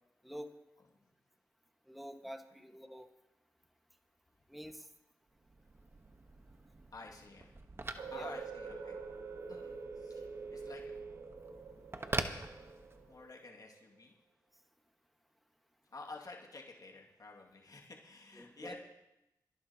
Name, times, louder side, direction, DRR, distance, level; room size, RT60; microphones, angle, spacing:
voice 1, 1.9-3.1 4.5-4.9 8.1-8.4 18.3-18.7, equal, ahead, 5 dB, 1.5 m, -47 dB
Telephone, 5.4-13.2, right 2 dB, 30° right, 1.1 m, -44 dB
voice 2, 6.9-7.5 8.1-9.0 9.5-10.2 10.5-10.9 13.1-14.1 15.9-18.7, left 3 dB, 55° left, -1 dB, 2.2 m, -51 dB
sound 1, 8.0-13.8, right 5 dB, 85° right, 2.0 m, -48 dB
26.5 x 11.0 x 2.9 m, 0.91 s
cardioid pair, 50°, 8 cm